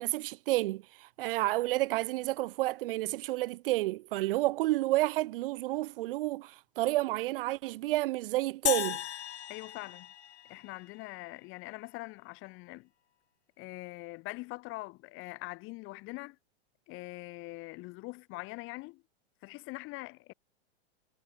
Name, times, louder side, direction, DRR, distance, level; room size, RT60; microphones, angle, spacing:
voice 1, 0.0-9.0, right 18 dB, 55° right, 1.2 m, -30 dB
sound 1, 8.7-11.1, left 11 dB, 85° left, 1.0 m, -35 dB
voice 2, 9.5-10.1 10.5-12.9 13.6-16.4 16.9-19.0 19.4-20.3, left 23 dB, 40° left, 4.7 m, -43 dB
hypercardioid pair, 130°, 32 cm